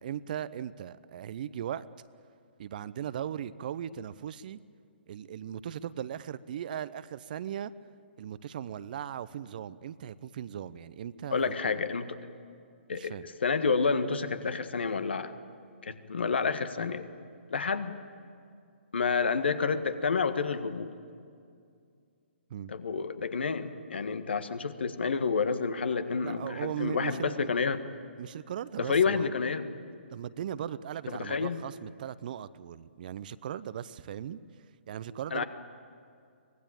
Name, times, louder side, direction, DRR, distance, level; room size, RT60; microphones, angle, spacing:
voice 1, 0.0-1.9 2.6-4.6 5.1-7.7 8.2-11.7 12.9-13.3 22.5-22.7 26.2-27.5 28.2-29.3 30.1-34.4 34.9-35.4, right 10 dB, 45° right, 16 dB, 0.7 m, -38 dB
voice 2, 11.3-12.2 12.9-15.3 15.8-17.0 17.5-17.9 18.9-20.9 22.7-27.8 28.8-29.7 31.1-31.6 35.3-35.4, left 5 dB, 65° left, 10 dB, 1.5 m, -29 dB
24.0 x 19.0 x 8.9 m, 2.3 s
figure-of-eight pair, 125°, 6 cm